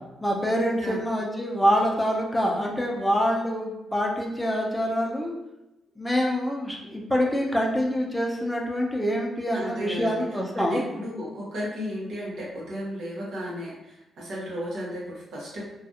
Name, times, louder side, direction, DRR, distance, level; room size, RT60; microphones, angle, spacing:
voice 1, 0.2-5.3 6.0-10.8, equal, 10° left, -1 dB, 0.6 m, -25 dB
voice 2, 9.5-10.2 10.6-15.6, equal, 70° right, -6 dB, 1.0 m, -34 dB
2.6 x 2.3 x 2.6 m, 0.94 s
hypercardioid pair, 45°, 0 cm